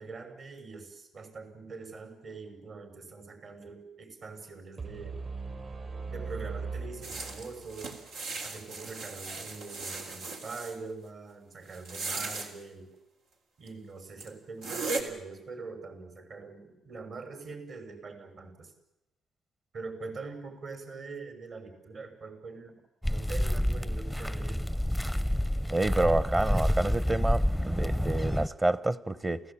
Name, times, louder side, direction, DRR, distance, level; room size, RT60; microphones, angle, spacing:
voice 1, 0.0-5.2 6.1-7.9 8.4-12.9 13.6-18.7 19.7-22.8 23.1-24.6, right 4 dB, 55° right, 5 dB, 5.9 m, -43 dB
sound 1, 4.8-7.8, right 4 dB, 40° right, 5.9 m, -39 dB
sound 2, 7.0-10.8 11.7-12.5 13.7-13.8 14.2-14.3 14.6-15.0, right 3 dB, 85° right, 3.6 m, -37 dB
sound 3, 23.0-28.5, equal, 5° right, 0.8 m, -28 dB
voice 2, 25.7-29.4, right 2 dB, 20° right, 15 dB, 1.1 m, -28 dB
29.0 x 16.5 x 8.8 m, 0.91 s
cardioid pair, 90°, 0 cm